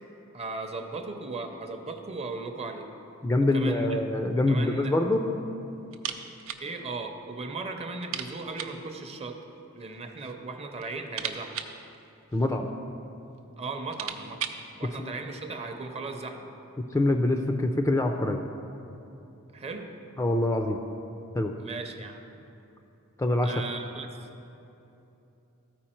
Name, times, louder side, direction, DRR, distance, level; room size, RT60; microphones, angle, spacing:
voice 1, 0.3-2.9 3.4-4.0 4.3-5.0 6.6-9.4 9.7-11.6 13.6-14.4 14.8-16.5 19.5-19.9 21.6-22.3 23.4-24.3, right 3 dB, 30° right, 5 dB, 0.6 m, -37 dB
voice 2, 3.2-5.3 12.3-12.7 15.0-15.1 16.9-18.4 20.2-20.8 21.3-21.5 23.2-23.5, left 2 dB, 15° left, 4 dB, 0.3 m, -25 dB
sound 1, 5.9-6.7 6.9-7.0 7.4-7.5 8.0-8.9 9.8-10.4 10.7-12.7 13.4-13.5 13.7-14.7, right 8 dB, 70° right, 0.5 m, -38 dB
14.0 x 4.7 x 4.4 m, 2.8 s
head